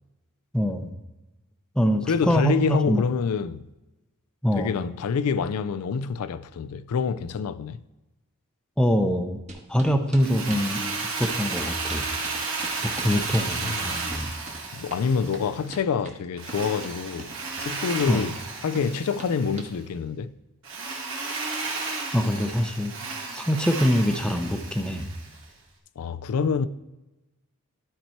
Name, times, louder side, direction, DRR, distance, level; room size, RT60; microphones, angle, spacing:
voice 1, 0.5-0.9 1.8-3.0 4.4-4.7 8.8-9.4 9.7-12.1 12.8-14.3 18.1-18.3 22.1-22.9 23.3-25.1, equal, 5° left, 0.5 m, -24 dB
voice 2, 2.1-3.6 4.6-7.8 13.0-13.3 13.5-13.9 14.7-17.3 17.6-18.4 18.6-20.3 26.0-26.7, left 6 dB, 80° left, 0.4 m, -26 dB
sound 1, 9.5-19.7, right 2 dB, 30° right, 1.2 m, -43 dB
Drill, 10.2-15.7 16.4-19.7 20.6-25.4, right 4 dB, 60° right, 2.0 m, -33 dB
12.0 x 4.4 x 4.4 m
head